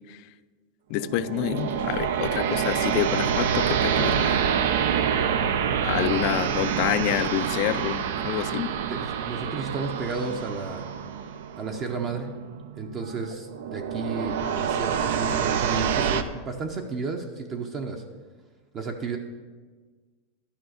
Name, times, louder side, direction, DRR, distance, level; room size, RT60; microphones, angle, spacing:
voice 1, 0.9-4.4 5.8-8.7, left 15 dB, 45° left, 15 dB, 0.3 m, -28 dB
sound 1, 1.0-16.2, right 8 dB, 80° right, 0.6 m, -27 dB
voice 2, 8.9-10.9 11.6-12.3 12.8-18.0 18.7-19.2, right 4 dB, 25° right, 4 dB, 0.7 m, -32 dB
11.5 x 5.6 x 6.4 m, 1.4 s
supercardioid pair, 165°, 0 cm